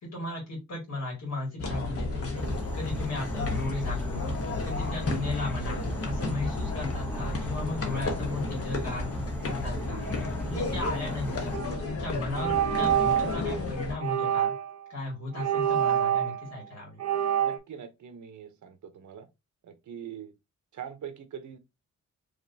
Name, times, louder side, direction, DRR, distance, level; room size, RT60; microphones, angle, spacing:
voice 1, 0.0-2.3 2.6-4.3 4.6-9.1 9.5-10.0 10.4-14.6 14.9-17.0, left 2 dB, 70° left, 2.2 m, -35 dB
sound 1, 1.6-13.9, left 3 dB, 50° left, 1.1 m, -33 dB
Insect / Frog, 2.4-11.6, equal, 5° left, 0.8 m, -37 dB
sound 2, 11.5-11.7 12.3-13.4 14.0-14.8 15.3-16.6 17.0-17.6, right 10 dB, 60° right, 1.2 m, -26 dB
voice 2, 17.4-19.3 19.6-20.3 20.7-21.6, right 8 dB, 80° right, 0.9 m, -42 dB
5.1 x 3.0 x 2.7 m
wide cardioid pair, 155°, 29 cm